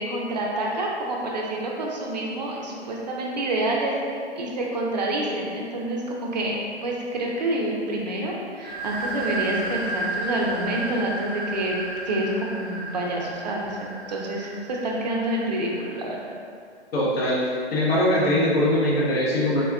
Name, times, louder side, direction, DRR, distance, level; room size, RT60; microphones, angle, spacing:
voice 1, 0.0-6.6 6.8-11.8 12.0-16.2, right 1 dB, 40° right, -2 dB, 0.4 m, -28 dB
sound 1, 8.6-16.1, right 2 dB, 5° right, 1.0 m, -33 dB
voice 2, 16.9-17.4 17.7-19.6, left 1 dB, 60° left, -5 dB, 0.7 m, -21 dB
3.4 x 2.1 x 2.4 m, 2.3 s
hypercardioid pair, 150°, 34 cm